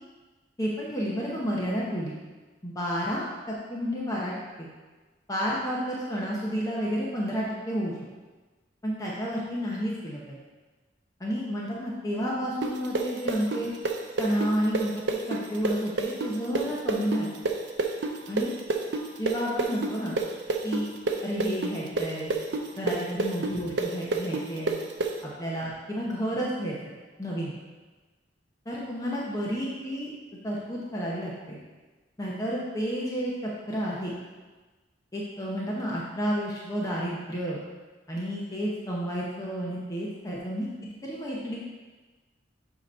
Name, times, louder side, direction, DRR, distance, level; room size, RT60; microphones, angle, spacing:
voice 1, 0.6-2.2 2.6-4.7 5.3-8.0 8.8-10.4 11.2-13.7 14.2-15.0 15.3-17.3 18.3-18.5 19.2-20.1 20.6-20.9 21.2-22.3 22.8-24.7 25.2-26.7 27.2-27.5 28.7-30.1 30.4-31.6 32.2-34.1 35.1-37.6 38.1-40.7 41.0-41.6, equal, 20° left, -5 dB, 0.8 m, -31 dB
sound 1, 12.6-20.2 20.5-25.1, right 3 dB, 65° right, 0.6 m, -27 dB
7.6 x 3.0 x 5.4 m, 1.3 s
head